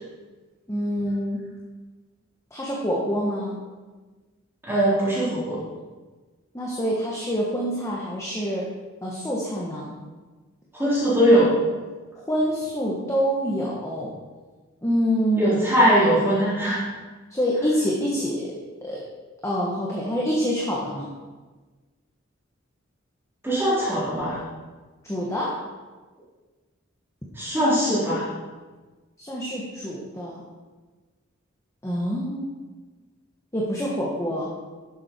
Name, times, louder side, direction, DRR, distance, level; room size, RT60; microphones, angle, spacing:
voice 1, 0.7-1.4 2.5-3.6 6.5-8.7 9.0-9.9 12.2-14.1 14.8-15.5 17.3-18.5 18.8-19.0 19.4-21.1 25.0-25.5 29.2-30.4 31.8-32.6 33.5-34.5, equal, 15° left, -4 dB, 1.4 m, -26 dB
voice 2, 4.6-5.6 10.7-11.5 15.4-16.8 23.4-24.4 27.4-28.3, equal, 10° right, -10 dB, 3.6 m, -20 dB
12.0 x 7.5 x 4.5 m, 1.3 s
head